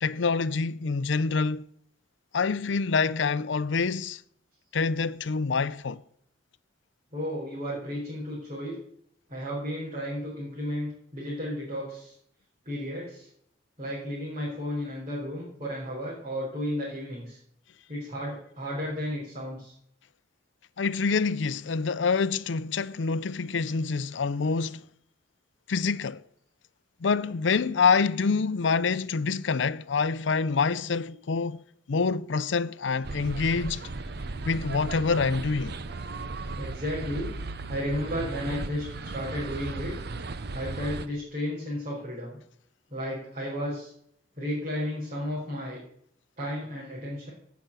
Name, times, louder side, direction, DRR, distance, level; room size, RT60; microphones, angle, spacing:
voice 1, 0.0-1.6 2.3-4.2 4.7-6.0 20.8-24.8 25.7-26.2 27.0-31.6 31.9-33.8 34.4-35.8, left 4 dB, 70° left, 0.5 m, -26 dB
voice 2, 7.1-8.8 9.3-12.1 12.6-13.3 13.8-17.4 17.9-19.7 34.3-34.6 36.5-37.3 37.7-39.9 40.5-42.4 42.9-43.9 44.4-45.8 46.4-47.3, equal, 35° right, 4.4 m, -33 dB
sound 1, 33.0-41.1, right 3 dB, 55° right, 0.8 m, -36 dB
16.5 x 6.0 x 6.7 m
head